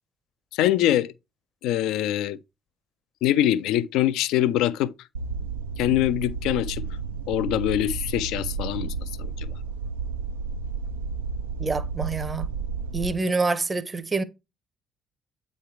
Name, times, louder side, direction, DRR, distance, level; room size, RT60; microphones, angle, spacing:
voice 1, 0.5-1.1 1.6-2.4 3.2-4.9 5.8-6.8 7.3-9.5, left 13 dB, 65° left, 0.3 m, -24 dB
sound 1, 5.1-13.1, right 5 dB, 80° right, 0.3 m, -32 dB
voice 2, 11.6-12.5 12.9-14.2, right 3 dB, 25° right, 0.7 m, -26 dB
8.2 x 3.2 x 4.4 m
figure-of-eight pair, 50°, 0 cm